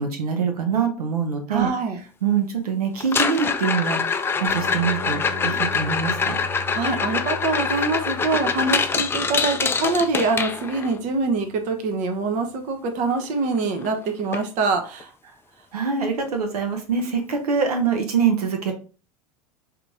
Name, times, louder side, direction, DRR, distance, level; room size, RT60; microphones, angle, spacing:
voice 1, 0.0-1.7 2.2-6.4 15.7-18.7, right 6 dB, 70° right, 5 dB, 0.8 m, -24 dB
voice 2, 1.5-2.0 6.7-15.1, right 3 dB, 40° right, 5 dB, 0.8 m, -24 dB
sound 1, 3.0-11.0 13.2-13.3 13.6-13.9 14.3-14.4 15.0-15.1 17.0-17.1, left 5 dB, 10° left, 0.3 m, -25 dB
sound 2, 4.5-10.5, left 1 dB, 30° left, 1.4 m, -38 dB
3.9 x 2.9 x 3.5 m, 0.36 s
figure-of-eight pair, 80°, 20 cm